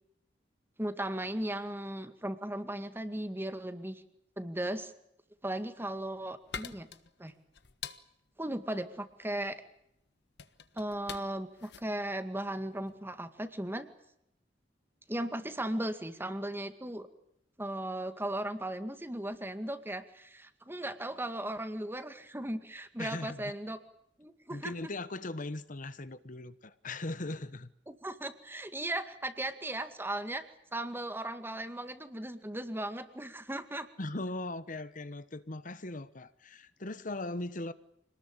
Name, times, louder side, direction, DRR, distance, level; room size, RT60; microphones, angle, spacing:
voice 1, 0.8-4.0 4.4-4.9 5.4-6.9 7.2-7.3 8.4-9.6 10.8-13.9 15.1-17.1 17.6-23.8 24.2-24.7 27.9-30.5 30.7-33.9, right 1 dB, 15° right, 2.1 m, -37 dB
sound 1, 5.6-13.1, left 7 dB, 65° left, 1.5 m, -47 dB
voice 2, 23.0-23.5 24.5-27.7 34.0-37.7, left 2 dB, 45° left, 1.2 m, -39 dB
26.5 x 20.0 x 9.0 m
head